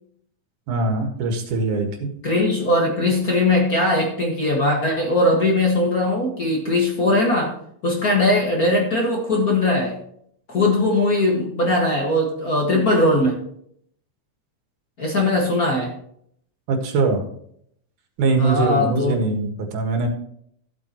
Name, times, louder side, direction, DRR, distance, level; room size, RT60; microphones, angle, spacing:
voice 1, 0.7-2.1 16.7-17.2 18.2-20.1, right 3 dB, 90° right, 3 dB, 3.1 m, -22 dB
voice 2, 2.2-7.5 7.8-10.0 10.5-13.4 15.0-15.9 18.4-19.1, left 2 dB, 35° left, -1 dB, 1.6 m, -20 dB
14.0 x 7.9 x 3.0 m, 0.68 s
omnidirectional pair, 3.5 m